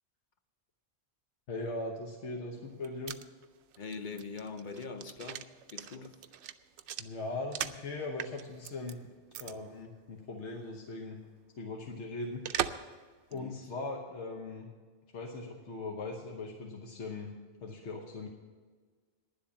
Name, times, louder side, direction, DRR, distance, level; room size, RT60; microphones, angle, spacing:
voice 1, 1.5-3.2 7.0-9.0 9.4-11.2 11.6-12.4 13.3-14.7 15.1-17.3 17.6-18.3, left 2 dB, 80° left, 1.4 m, -39 dB
sound 1, 2.6-7.9 8.2-8.9 9.3-9.5 9.8-9.9 12.4-12.9 13.3-13.4, right 10 dB, 85° right, 0.9 m, -39 dB
voice 2, 3.8-6.2 13.3-13.7, left 4 dB, 50° left, 0.9 m, -43 dB
10.5 x 7.7 x 8.5 m
omnidirectional pair, 1.2 m